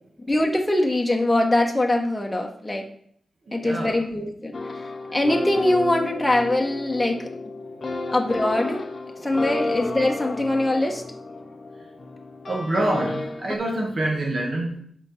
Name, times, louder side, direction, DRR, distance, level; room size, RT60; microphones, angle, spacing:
voice 1, 0.3-2.9 3.5-4.6 5.1-7.3 8.1-8.8 9.2-11.0, left 1 dB, 15° left, 1 dB, 1.1 m, -22 dB
voice 2, 3.5-4.0 5.1-5.2 8.0-8.1 9.2-9.4 12.5-14.8, right 1 dB, 55° right, -1 dB, 1.7 m, -27 dB
sound 1, 4.5-13.6, left 3 dB, 50° left, 0.9 m, -32 dB
7.9 x 4.9 x 4.3 m, 0.63 s
cardioid pair, 80°, 0 cm